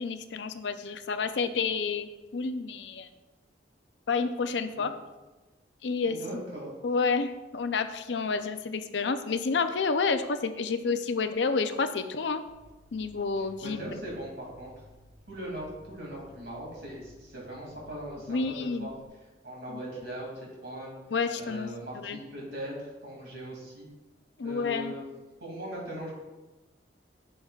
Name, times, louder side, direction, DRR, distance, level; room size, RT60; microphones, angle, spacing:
voice 1, 0.0-3.1 4.1-4.9 5.8-6.4 6.8-12.4 12.9-14.0 18.3-18.9 19.7-19.8 21.1-21.7 21.9-22.2 24.4-24.9, left 4 dB, 75° left, 9 dB, 0.5 m, -29 dB
voice 2, 6.1-6.7 13.6-14.7 15.3-18.9 19.4-20.9 21.4-23.9 24.4-25.0 25.4-26.1, right 1 dB, 65° right, -3 dB, 2.5 m, -40 dB
sound 1, 12.5-19.1, equal, 40° right, 1.1 m, -56 dB
11.0 x 6.5 x 2.4 m, 1.2 s
head